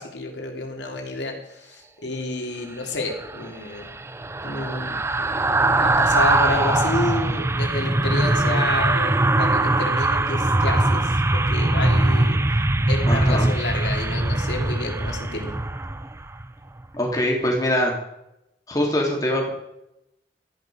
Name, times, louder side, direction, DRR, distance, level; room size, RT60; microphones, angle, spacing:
voice 1, 0.0-3.9 4.4-5.3 5.7-12.4 12.9-15.5, left 2 dB, 85° left, 2 dB, 3.0 m, -30 dB
sound 1, 3.1-16.5 16.8-17.0, right 2 dB, 15° right, 0.5 m, -21 dB
voice 2, 13.1-13.5 16.9-17.9 18.7-19.5, left 1 dB, 20° left, -1 dB, 3.3 m, -23 dB
14.0 x 10.0 x 5.1 m, 0.84 s
head